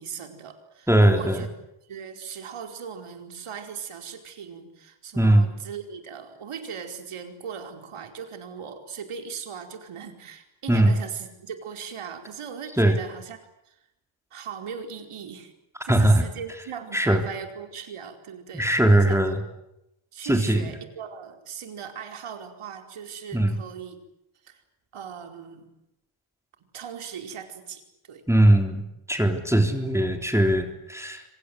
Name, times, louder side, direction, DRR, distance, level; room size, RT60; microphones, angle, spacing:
voice 1, 0.0-1.5 1.9-13.4 13.7-13.8 14.3-15.5 15.8-19.4 20.1-24.0 24.4-24.6 24.9-25.7 26.7-28.3, right 7 dB, 85° right, 5 dB, 4.8 m, -39 dB
voice 2, 0.9-1.4 5.1-5.5 10.7-11.0 12.8-13.0 15.9-16.2 16.9-17.2 18.5-19.4 20.2-20.7 23.3-23.6 28.3-28.8 29.1-31.2, right 1 dB, 5° right, 5 dB, 3.8 m, -20 dB
27.5 x 26.5 x 8.0 m, 0.85 s
cardioid pair, 85°, 49 cm